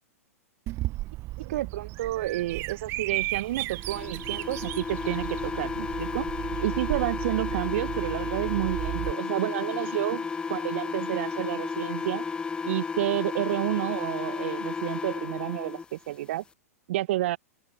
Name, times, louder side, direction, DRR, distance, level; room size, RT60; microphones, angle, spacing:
Bird vocalization bird call bird song, 0.7-9.1, right 18 dB, 30° right, 1.0 m, -35 dB
voice 1, 1.4-6.3 6.6-12.3 12.6-16.4 16.9-17.4, right 15 dB, 50° right, 1.5 m, -30 dB
sound 1, 3.8-15.8, left 5 dB, 10° left, 0.6 m, -33 dB
figure-of-eight pair, 105°, 9 cm